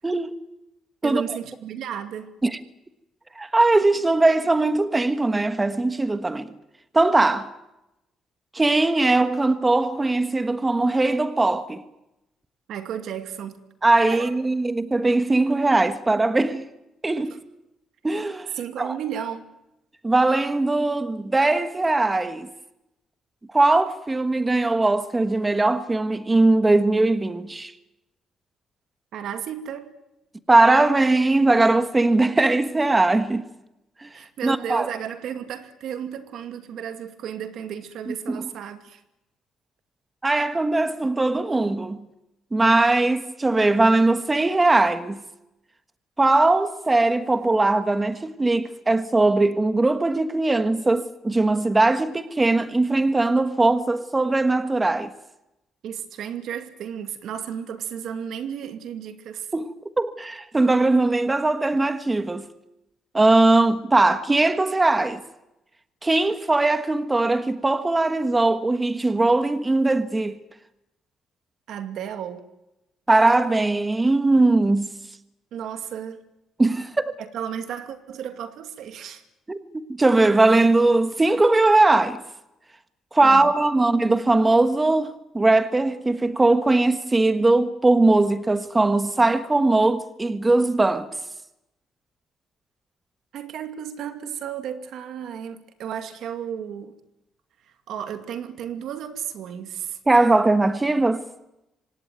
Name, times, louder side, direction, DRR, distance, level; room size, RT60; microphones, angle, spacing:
voice 1, 1.0-2.3 12.7-13.6 14.1-14.3 17.3-17.4 18.5-19.4 29.1-29.9 34.1-39.0 55.8-59.5 71.7-72.5 75.5-76.2 77.2-79.2 83.2-83.5 93.3-97.0 97.9-100.0, right 9 dB, 75° right, 2.4 m, -33 dB
voice 2, 3.4-6.5 6.9-7.5 8.5-11.8 13.8-16.7 17.0-17.3 18.0-18.5 18.8-18.9 20.0-22.5 23.5-27.7 30.5-33.4 34.0-34.1 34.4-34.9 38.1-38.5 40.2-42.0 42.5-45.2 46.2-55.1 59.5-62.5 63.1-65.2 66.0-70.4 73.1-74.9 76.6-77.1 79.5-82.2 83.1-91.1 100.1-101.2, right 2 dB, 20° right, 1.4 m, -20 dB
25.5 x 18.0 x 9.4 m
cardioid pair, 90°, 0 cm